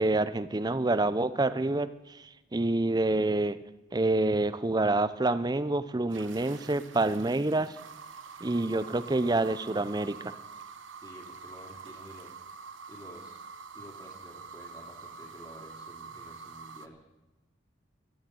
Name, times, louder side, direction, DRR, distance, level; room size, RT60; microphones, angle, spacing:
voice 1, 0.0-1.9 2.5-3.6 3.9-7.8 8.4-10.3, right 2 dB, 20° right, 14 dB, 0.6 m, -27 dB
sound 1, 6.1-16.9, right 5 dB, 80° right, 1.0 m, -46 dB
voice 2, 11.0-12.3 12.9-13.4 13.7-17.0, equal, 20° left, -2 dB, 2.6 m, -50 dB
13.0 x 12.5 x 7.9 m, 1.0 s
head